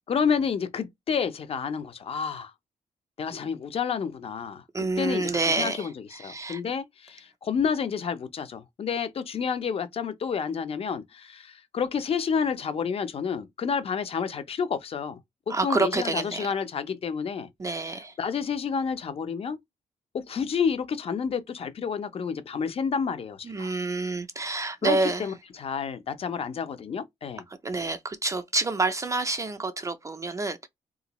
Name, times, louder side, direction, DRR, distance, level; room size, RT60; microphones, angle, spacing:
voice 1, 0.1-2.5 3.2-15.2 15.5-17.5 18.2-19.6 20.1-23.7 24.8-27.4, left 6 dB, 50° left, 0.6 m, -30 dB
voice 2, 4.7-6.6 15.5-16.6 17.6-18.1 23.5-25.3 27.6-30.7, right 3 dB, 25° right, 0.4 m, -28 dB
3.4 x 2.5 x 3.0 m
cardioid pair, 95°, 13 cm